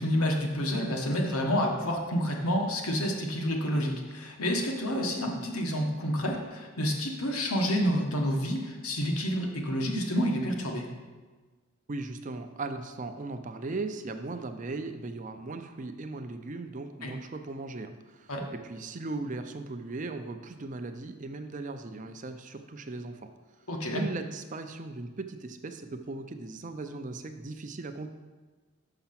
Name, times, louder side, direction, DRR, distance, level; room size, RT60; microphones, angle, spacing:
voice 1, 0.0-10.8 17.0-17.1 18.3-18.4 23.7-24.0, equal, 80° left, 1 dB, 1.3 m, -29 dB
voice 2, 11.9-18.3 18.6-23.3 23.9-28.1, right 3 dB, 35° right, 8 dB, 0.5 m, -38 dB
6.6 x 5.8 x 5.8 m, 1.3 s
head